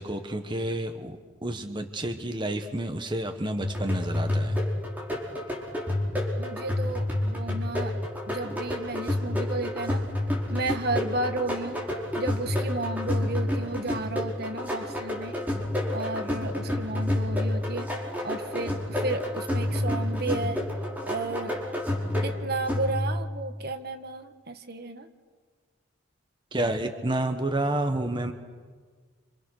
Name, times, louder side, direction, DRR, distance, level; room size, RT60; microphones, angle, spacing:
voice 1, 0.0-4.6 15.5-15.7 26.5-28.3, right 1 dB, 25° right, 5 dB, 1.3 m, -30 dB
sound 1, 3.6-23.3, left 1 dB, 10° right, 5.1 m, -29 dB
voice 2, 6.4-7.9 8.3-10.0 10.5-11.8 12.1-15.3 15.9-20.6 21.1-21.5 22.2-25.1, right 2 dB, 50° right, 7 dB, 1.7 m, -33 dB
29.5 x 27.0 x 6.6 m, 1.5 s
head